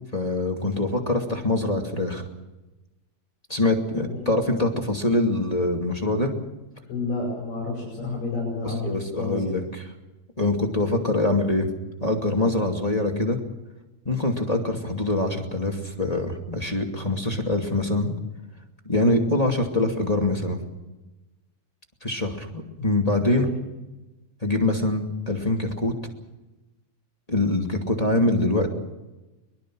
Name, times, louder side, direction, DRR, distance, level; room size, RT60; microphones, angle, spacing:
voice 1, 0.1-2.2 3.5-6.3 8.6-9.9 10.4-11.7 12.0-13.4 14.0-18.1 18.8-20.6 22.0-23.5 24.4-25.9 27.3-28.7, left 2 dB, 15° left, 2 dB, 1.7 m, -24 dB
voice 2, 4.0-4.3 6.9-9.6 23.3-23.5, left 3 dB, 55° left, -2 dB, 7.2 m, -30 dB
23.5 x 22.5 x 6.3 m, 1.0 s
omnidirectional pair, 4.7 m